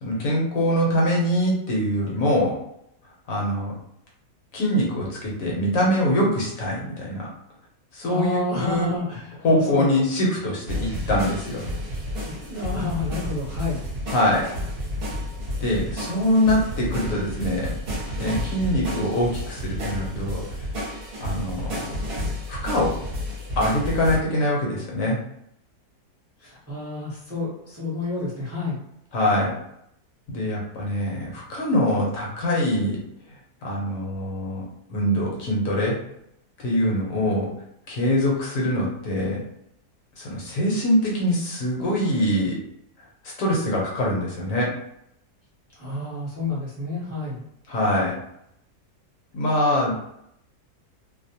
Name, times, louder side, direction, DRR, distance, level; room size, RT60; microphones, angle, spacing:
voice 1, 0.0-2.5 3.3-3.7 4.5-7.3 7.9-8.4 8.7-8.9 9.4-11.6 14.1-14.5 15.6-17.7 18.2-20.4 21.2-21.9 22.5-23.0 23.6-25.2 29.1-29.5 30.3-33.0 33.6-34.6 34.9-36.0 36.6-37.5 37.9-39.4 40.2-42.6 43.2-44.7 47.7-48.2 49.3-49.9, left 1 dB, 65° left, -3 dB, 1.0 m, -23 dB
voice 2, 8.0-9.9 12.3-13.8 26.4-28.8 45.8-47.4, left 3 dB, 15° right, -7 dB, 0.5 m, -29 dB
sound 1, 10.7-24.2, left 1 dB, 50° right, 0.7 m, -31 dB
2.6 x 2.0 x 2.7 m, 0.76 s
omnidirectional pair, 1.7 m